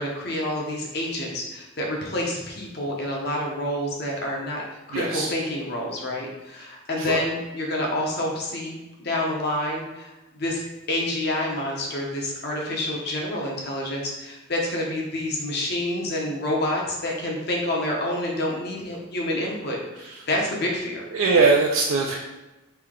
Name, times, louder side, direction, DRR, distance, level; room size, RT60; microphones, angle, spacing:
voice 1, 0.0-4.6 4.9-21.1, left 1 dB, 50° left, -1 dB, 0.8 m, -28 dB
voice 2, 4.9-5.3 7.0-7.2 21.1-22.1, right 4 dB, 80° right, -1 dB, 0.4 m, -20 dB
3.3 x 2.8 x 3.7 m, 1.1 s
head